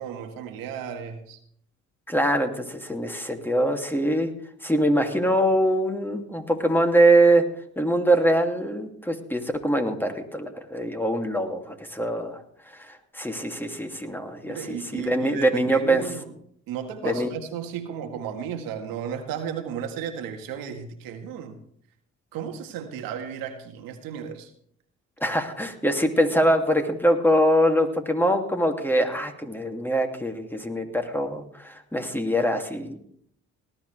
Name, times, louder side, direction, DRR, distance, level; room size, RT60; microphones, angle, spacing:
voice 1, 0.0-1.4 14.5-16.3 16.7-21.6 22.3-24.5, right 8 dB, 85° right, 5 dB, 1.7 m, -34 dB
voice 2, 2.1-4.3 4.6-7.4 7.8-12.4 12.8-16.0 17.0-17.3 25.2-33.0, right 1 dB, 5° left, 4 dB, 2.6 m, -23 dB
19.0 x 12.0 x 3.4 m, 0.64 s
supercardioid pair, 55°, 34 cm